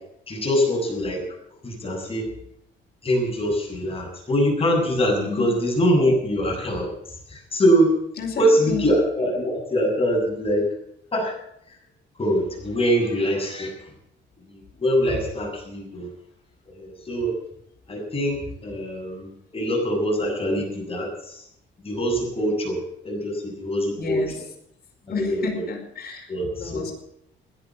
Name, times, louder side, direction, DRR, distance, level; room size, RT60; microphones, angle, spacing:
voice 1, 0.3-1.2 1.6-2.3 3.0-8.0 8.4-10.6 11.1-11.4 12.2-13.7 14.5-16.1 16.7-17.3 17.9-21.4 21.8-24.2 25.3-25.4 26.3-26.9, equal, 30° left, 0 dB, 7.6 m, -23 dB
voice 2, 5.1-5.5 8.2-8.8 24.0-24.4 25.1-26.3 26.6-26.9, left 5 dB, 55° left, 2 dB, 5.0 m, -31 dB
16.5 x 11.0 x 7.5 m, 0.74 s
cardioid pair, 90°, 20 cm